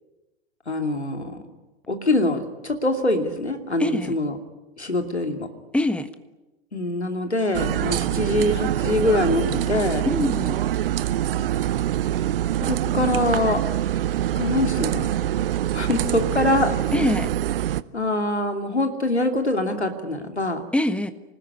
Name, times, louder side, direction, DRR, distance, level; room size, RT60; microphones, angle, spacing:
voice 1, 0.7-1.4 1.9-4.4 4.8-5.5 6.7-10.1 12.6-13.6 14.4-15.2 15.7-16.7 17.9-20.6, left 2 dB, 85° left, 5 dB, 2.8 m, -24 dB
voice 2, 3.8-4.1 5.7-6.1 10.0-10.6 16.9-17.3 20.7-21.1, left 1 dB, 5° left, 11 dB, 1.4 m, -23 dB
sound 1, 7.5-17.8, right 12 dB, 60° right, 0.8 m, -24 dB
26.5 x 19.5 x 9.7 m, 1.1 s
figure-of-eight pair, 90°, 32 cm